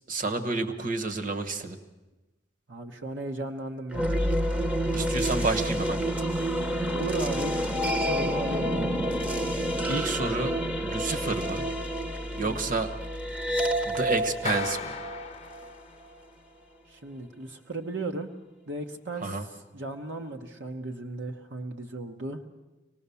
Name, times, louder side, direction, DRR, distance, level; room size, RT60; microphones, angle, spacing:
voice 1, 0.1-1.8 4.9-6.0 9.9-10.5 10.8-11.6 12.3-12.9 13.8-15.0 19.2-19.4, right 3 dB, 50° right, 7 dB, 1.4 m, -30 dB
voice 2, 2.7-4.2 6.9-8.7 12.4-12.8 16.9-18.3 18.7-22.4, right 2 dB, 75° right, 3 dB, 1.2 m, -36 dB
sound 1, 3.9-16.1, equal, 5° right, 0.8 m, -29 dB
Clapping, 14.5-16.2, left 5 dB, 35° left, 0.7 m, -37 dB
25.0 x 19.0 x 7.0 m, 1.1 s
head